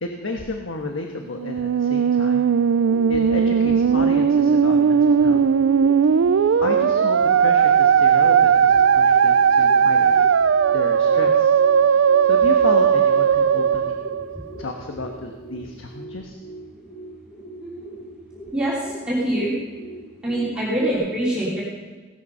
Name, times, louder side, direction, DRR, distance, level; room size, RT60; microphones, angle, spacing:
voice 1, 0.0-2.5 3.1-5.4 6.6-10.2 10.7-11.5 11.9-13.9 14.6-16.4, left 2 dB, 80° left, 3 dB, 1.4 m, -32 dB
Musical instrument, 1.3-14.7, right 7 dB, 75° right, 0.4 m, -17 dB
sound 1, 2.6-20.9, right 1 dB, 30° left, 3.5 m, -42 dB
voice 2, 18.5-19.5 20.2-21.6, right 1 dB, 5° right, -9 dB, 3.5 m, -24 dB
17.5 x 13.0 x 5.5 m, 1.3 s
head